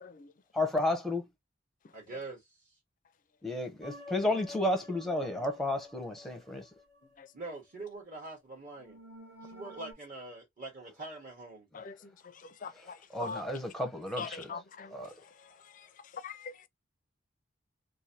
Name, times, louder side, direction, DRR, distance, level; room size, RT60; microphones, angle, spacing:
voice 1, 0.5-1.2 3.4-6.6 13.1-14.5 14.9-15.1, left 1 dB, ahead, 0.7 m, -32 dB
voice 2, 1.9-2.8 7.3-9.0 9.4-11.7, right 2 dB, 40° right, 1.4 m, -44 dB
sound 1, 3.8-7.1 8.8-9.9, left 1 dB, 55° right, 1.6 m, -49 dB
voice 3, 12.6-13.4 14.2-14.9 16.2-16.7, left 5 dB, 40° left, 0.4 m, -42 dB
3.2 x 2.6 x 2.7 m
head